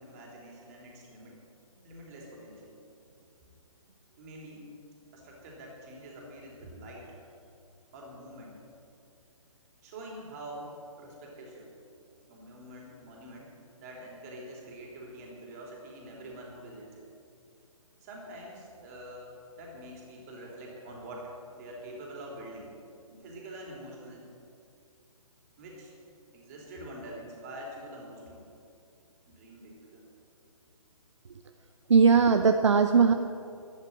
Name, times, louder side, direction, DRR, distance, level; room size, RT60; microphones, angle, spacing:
voice 1, 0.0-1.4 1.8-2.7 4.2-4.7 5.1-7.2 7.9-8.6 9.8-11.7 12.3-17.0 18.0-22.7 23.1-24.3 25.6-25.9 26.3-28.5 29.3-30.1, right 1 dB, 25° right, -1 dB, 3.5 m, -45 dB
voice 2, 31.9-33.1, right 5 dB, 55° right, 7 dB, 0.7 m, -19 dB
11.5 x 10.5 x 9.1 m, 2.5 s
figure-of-eight pair, 135°, 18 cm